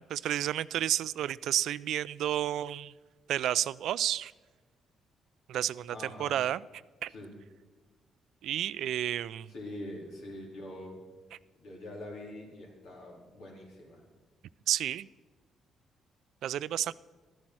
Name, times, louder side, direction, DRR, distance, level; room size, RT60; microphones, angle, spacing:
voice 1, 0.0-2.9 3.3-4.3 5.5-6.6 7.0-7.1 8.4-9.5 14.7-15.1 16.4-16.9, right 11 dB, 75° right, 19 dB, 0.3 m, -31 dB
voice 2, 5.9-6.3 7.1-7.3 9.5-11.0 11.6-14.0, left 1 dB, 80° left, -1 dB, 4.0 m, -44 dB
13.0 x 10.5 x 6.1 m, 1.4 s
cardioid pair, 90°, 0 cm